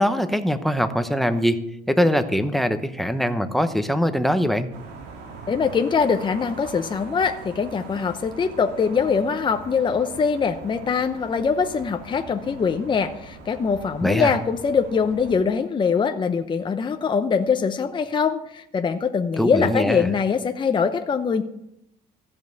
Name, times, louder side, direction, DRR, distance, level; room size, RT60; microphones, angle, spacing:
voice 1, 0.0-1.6 1.9-4.7 14.0-14.3 19.4-20.1, equal, ahead, 10 dB, 0.9 m, -22 dB
sound 1, 4.7-15.4, right 4 dB, 85° right, 2.0 m, -42 dB
voice 2, 5.5-21.4, left 6 dB, 30° left, 6 dB, 0.8 m, -23 dB
15.0 x 5.4 x 7.9 m, 0.77 s
cardioid pair, 110°, 17 cm